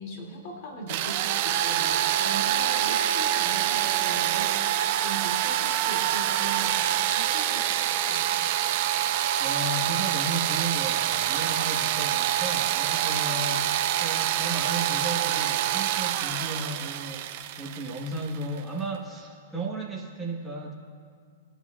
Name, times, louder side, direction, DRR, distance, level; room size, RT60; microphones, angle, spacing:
voice 1, 0.0-8.7, right 1 dB, 45° left, 0 dB, 2.5 m, -39 dB
sound 1, 0.9-18.6, right 12 dB, 50° right, 0.5 m, -26 dB
voice 2, 9.4-20.7, right 2 dB, 5° right, -4 dB, 1.3 m, -34 dB
20.0 x 9.0 x 2.4 m, 2.1 s
hypercardioid pair, 135°, 0 cm